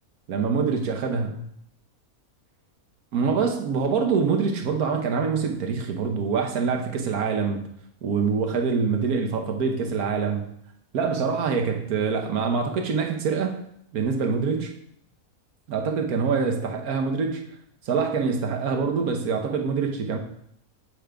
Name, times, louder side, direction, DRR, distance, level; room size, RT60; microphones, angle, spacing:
voice 1, 0.3-1.4 3.1-7.7 8.0-10.5 10.9-13.6 13.9-14.7 15.7-17.4 17.8-20.2, right 5 dB, 85° right, 4 dB, 1.4 m, -25 dB
7.9 x 4.9 x 3.4 m, 0.71 s
omnidirectional pair, 1.5 m